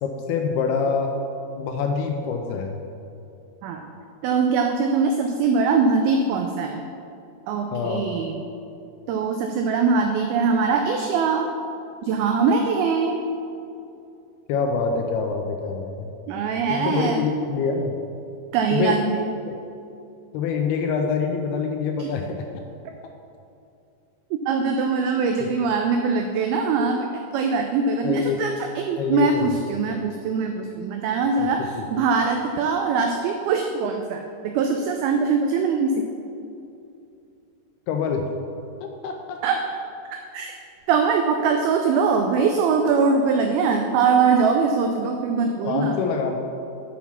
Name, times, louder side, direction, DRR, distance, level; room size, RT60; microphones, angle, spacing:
voice 1, 0.0-1.2 1.6-2.8 7.7-8.1 14.5-16.1 16.7-18.0 18.7-19.0 19.5-19.6 20.3-22.5 28.0-28.4 29.0-29.6 31.4-31.9 37.9-38.3 38.8-39.4 45.7-46.4, left 5 dB, 80° left, 3 dB, 2.3 m, -25 dB
voice 2, 4.2-6.8 7.5-8.4 9.1-11.5 12.0-13.2 16.3-17.2 18.5-19.2 22.0-22.1 24.5-36.1 39.4-39.6 40.3-40.5 40.9-46.0, right 5 dB, 90° right, 4 dB, 2.1 m, -22 dB
7.3 x 5.9 x 5.7 m, 2.6 s
omnidirectional pair, 4.9 m